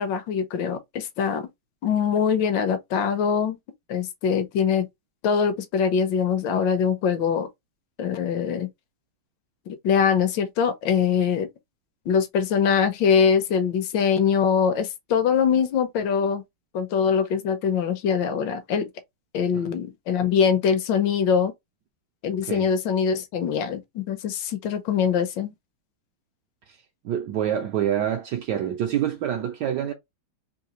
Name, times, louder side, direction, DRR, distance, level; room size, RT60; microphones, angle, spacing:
voice 1, 0.0-1.5 1.8-3.6 3.9-4.9 5.2-7.5 8.0-8.7 9.8-11.5 12.1-16.4 16.7-18.9 19.3-21.5 22.2-25.5, left 7 dB, 70° left, 1.3 m, -23 dB
voice 2, 27.0-29.9, right 10 dB, 75° right, 1.0 m, -26 dB
3.8 x 2.7 x 2.9 m
omnidirectional pair, 2.3 m